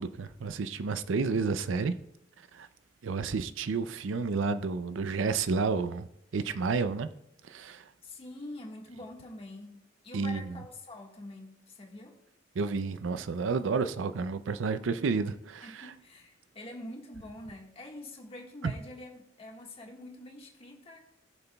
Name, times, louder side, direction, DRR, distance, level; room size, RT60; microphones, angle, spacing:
voice 1, 0.0-1.9 2.5-2.7 3.0-6.1 6.3-7.1 7.5-7.8 10.1-10.5 12.6-15.9 18.6-18.7, right 4 dB, 80° right, 0.5 m, -30 dB
voice 2, 8.0-12.1 15.6-21.0, left 1 dB, 30° left, 1.5 m, -45 dB
20.0 x 6.8 x 2.3 m
head